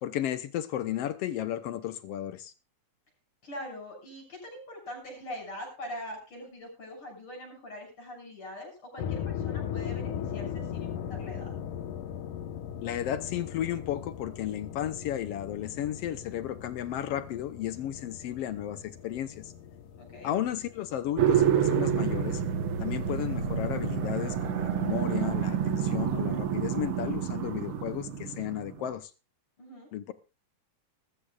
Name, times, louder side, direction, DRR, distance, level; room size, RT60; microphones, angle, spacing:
voice 1, 0.0-2.5 12.8-19.5 20.2-22.4 22.8-29.1 29.9-30.1, left 11 dB, 70° left, 1.6 m, -33 dB
voice 2, 3.4-11.5 20.0-20.3 29.6-29.9, equal, 45° left, 7.7 m, -43 dB
sound 1, 9.0-24.2, left 9 dB, 90° left, 2.7 m, -39 dB
sound 2, 21.2-28.9, right 8 dB, 55° right, 1.7 m, -28 dB
20.5 x 13.5 x 2.4 m
omnidirectional pair, 3.5 m